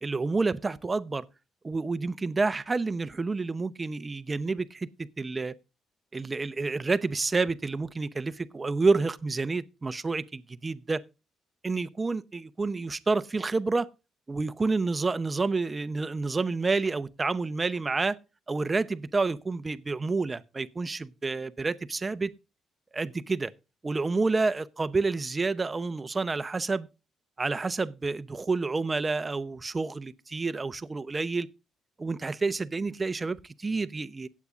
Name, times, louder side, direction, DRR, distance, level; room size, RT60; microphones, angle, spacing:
voice 1, 0.0-1.2 1.6-4.9 5.2-5.5 6.1-11.0 11.6-13.9 14.3-18.2 18.5-22.3 22.9-23.5 23.8-26.9 27.4-31.5 32.0-34.3, right 3 dB, 25° right, 0.7 m, -29 dB
17.5 x 8.4 x 2.5 m
cardioid pair, 90°, 0 cm